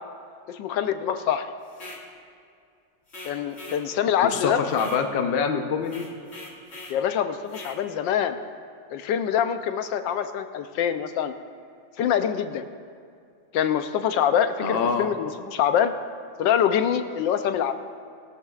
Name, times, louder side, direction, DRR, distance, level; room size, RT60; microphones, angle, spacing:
voice 1, 0.5-1.5 3.2-4.6 6.9-8.4 8.9-11.3 12.0-12.7 13.5-15.9 16.4-17.7, left 9 dB, 80° left, 9 dB, 1.3 m, -25 dB
sound 1, 1.7-2.1 3.1-3.9 4.7-5.0 5.8-7.0 7.5-7.8, left 1 dB, 35° left, 1.8 m, -42 dB
voice 2, 4.2-6.1 14.6-15.1, left 6 dB, 55° left, 5 dB, 0.6 m, -25 dB
19.5 x 13.0 x 2.4 m, 2.4 s
omnidirectional pair, 2.1 m